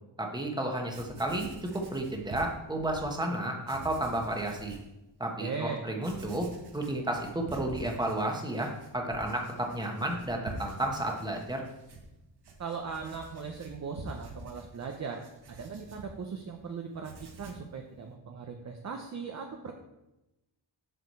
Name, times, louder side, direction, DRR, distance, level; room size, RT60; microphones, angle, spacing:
voice 1, 0.2-1.5 1.7-4.8 5.2-6.5 6.7-11.6, right 1 dB, 10° right, 1 dB, 1.2 m, -32 dB
Writing, 0.6-0.7 0.9-3.1 3.6-4.9 5.4-5.5 6.0-16.6 16.9-17.7, right 2 dB, 60° right, 1.6 m, -47 dB
voice 2, 5.4-5.8 12.6-19.7, right 5 dB, 40° right, 3 dB, 0.7 m, -39 dB
8.0 x 4.8 x 6.7 m, 0.95 s
wide cardioid pair, 180°, 43 cm